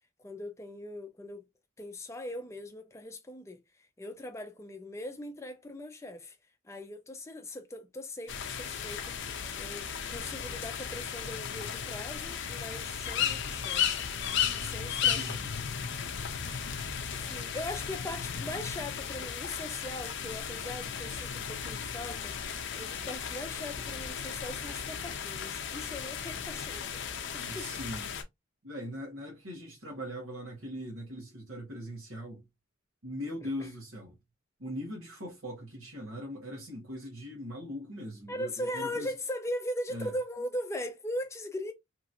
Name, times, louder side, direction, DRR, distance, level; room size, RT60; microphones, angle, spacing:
voice 1, 0.2-1.4 1.8-3.6 4.0-6.4 6.6-9.1 9.6-14.0 14.5-15.4 17.1-22.3 22.8-27.7 38.3-41.7, left 1 dB, 15° left, 0.5 m, -40 dB
sound 1, 8.3-28.2, left 8 dB, 60° left, 0.5 m, -35 dB
voice 2, 15.0-15.5 27.4-28.1 28.6-32.4 33.0-34.2 34.6-39.1 39.9-40.1, equal, 70° right, 1.2 m, -40 dB
2.9 x 2.9 x 2.5 m
head